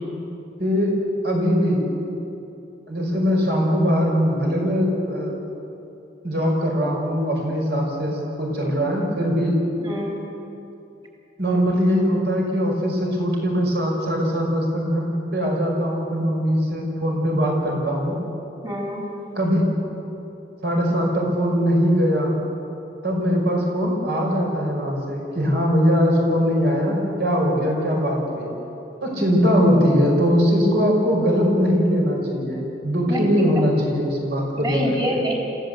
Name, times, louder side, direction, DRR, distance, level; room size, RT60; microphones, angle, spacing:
voice 1, 0.6-0.9 1.2-1.8 2.9-5.3 6.2-9.6 11.4-18.2 19.3-19.6 20.6-22.4 23.0-28.5 29.0-35.2, equal, 65° right, -1 dB, 5.6 m, -21 dB
voice 2, 9.8-10.1 18.6-19.0 33.1-33.5 34.6-35.3, equal, 25° right, -1 dB, 3.5 m, -26 dB
26.5 x 16.0 x 8.1 m, 2.9 s
head